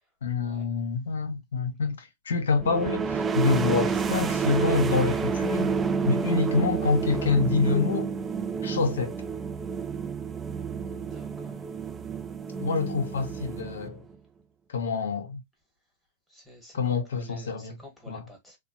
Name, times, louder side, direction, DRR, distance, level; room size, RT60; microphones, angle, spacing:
voice 1, 0.2-5.7 6.0-8.1 8.6-9.2 12.6-14.0 14.7-15.4 16.7-17.8 18.1-18.2, left 4 dB, 80° left, 0.9 m, -26 dB
sound 1, 2.6-14.2, right 5 dB, 20° right, 0.3 m, -29 dB
voice 2, 10.8-11.7 16.3-18.6, equal, ahead, 1.5 m, -50 dB
3.0 x 2.2 x 2.7 m
hypercardioid pair, 115°, 0 cm